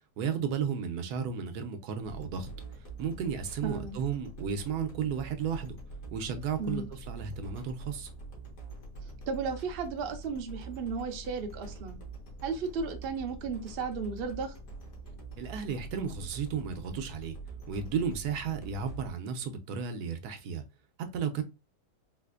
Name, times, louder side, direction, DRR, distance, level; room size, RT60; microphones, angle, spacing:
voice 1, 0.2-2.5 3.0-5.8 6.1-8.1 15.4-17.4 17.7-20.6 21.1-21.4, right 7 dB, 80° right, 1.2 m, -33 dB
sound 1, 2.0-19.1, right 3 dB, 60° left, 1.6 m, -45 dB
voice 2, 3.6-4.0 6.6-6.9 9.0-12.0 12.4-14.6, right 5 dB, 55° right, 0.6 m, -34 dB
4.0 x 2.5 x 2.3 m
omnidirectional pair, 1.7 m